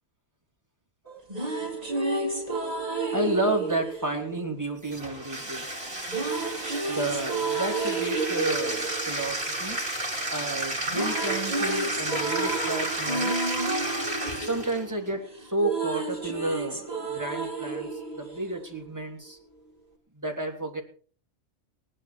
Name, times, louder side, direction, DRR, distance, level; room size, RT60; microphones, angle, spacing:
sound 1, 1.1-5.2 6.1-10.3 10.6-19.1, right 3 dB, 30° right, 2.4 m, -31 dB
voice 1, 3.1-5.7 6.9-9.8 10.3-13.4 14.4-15.2 15.5-17.9 18.2-19.4 20.2-20.8, right 2 dB, 15° right, 1 dB, 3.0 m, -31 dB
Bathtub (filling or washing), 4.8-14.9, right 1 dB, 55° right, 3.4 m, -32 dB
18.5 x 11.5 x 4.6 m, 0.42 s
omnidirectional pair, 1.2 m